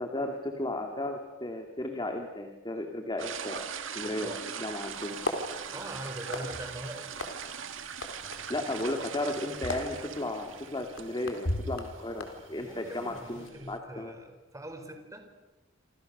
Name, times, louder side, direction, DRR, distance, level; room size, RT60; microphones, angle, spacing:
voice 1, 0.0-5.2 8.5-14.1, left 1 dB, 25° left, 3 dB, 2.5 m, -34 dB
sound 1, 3.2-13.8, right 7 dB, 75° right, 2.0 m, -42 dB
voice 2, 4.0-4.4 5.7-7.1 12.6-15.2, right 1 dB, 15° right, 5 dB, 4.5 m, -42 dB
sound 2, 4.9-13.5, left 1 dB, 75° left, 4.2 m, -40 dB
28.5 x 27.5 x 6.8 m, 1.1 s
head